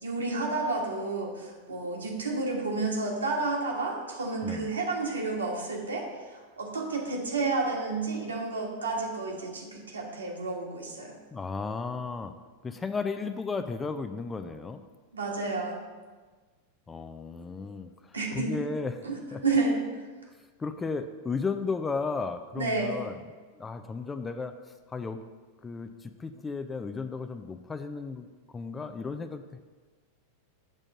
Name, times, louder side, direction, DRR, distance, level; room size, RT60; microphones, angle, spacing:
voice 1, 0.0-11.1 15.1-15.8 18.1-18.5 19.0-20.0 22.6-22.9, right 3 dB, 75° right, -1 dB, 1.5 m, -31 dB
voice 2, 11.3-12.3 12.6-14.8 16.9-19.0 19.3-19.4 20.6-23.2 23.5-24.5 24.9-25.2 25.6-28.3 28.5-29.6, left 4 dB, 15° left, 9 dB, 0.4 m, -34 dB
7.5 x 3.8 x 6.3 m, 1.4 s
figure-of-eight pair, 90°, 0 cm